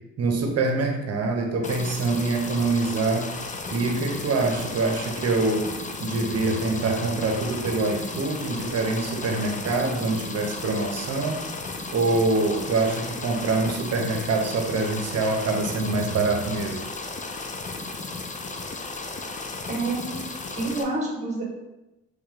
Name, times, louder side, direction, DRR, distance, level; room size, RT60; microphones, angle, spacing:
voice 1, 0.2-3.3 3.7-5.7 6.0-11.4 11.9-16.8, right 3 dB, 55° right, 3 dB, 0.8 m, -25 dB
sound 1, 1.6-20.8, left 3 dB, 25° left, 0.5 m, -35 dB
voice 2, 19.7-20.2 20.6-21.4, right 2 dB, 25° right, -2 dB, 1.3 m, -28 dB
3.3 x 3.1 x 3.7 m, 0.98 s
cardioid pair, 90°, 30 cm